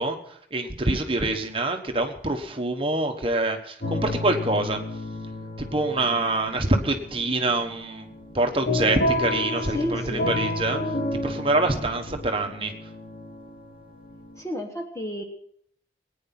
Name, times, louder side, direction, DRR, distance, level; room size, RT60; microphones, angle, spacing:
voice 1, 0.0-4.8 5.6-8.1 8.3-11.0 11.2-12.7, right 2 dB, 30° right, 5 dB, 1.3 m, -25 dB
sound 1, 3.8-14.4, left 1 dB, 70° left, 5.2 m, -31 dB
voice 2, 9.7-10.3 14.4-15.2, left 1 dB, 15° left, 2 dB, 1.2 m, -31 dB
19.0 x 9.5 x 6.0 m, 0.68 s
head